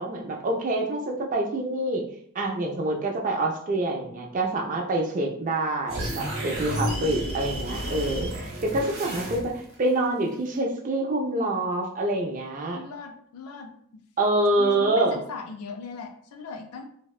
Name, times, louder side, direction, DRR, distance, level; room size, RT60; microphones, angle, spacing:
voice 1, 0.0-2.0 2.4-12.8 14.2-15.2, right 2 dB, 35° right, 1 dB, 0.4 m, -26 dB
sound 1, 5.9-9.7, right 1 dB, 65° right, 0.7 m, -32 dB
voice 2, 6.7-7.3 12.7-13.7 14.6-16.8, left 5 dB, 75° left, 5 dB, 0.4 m, -38 dB
2.6 x 2.1 x 2.3 m, 0.64 s
head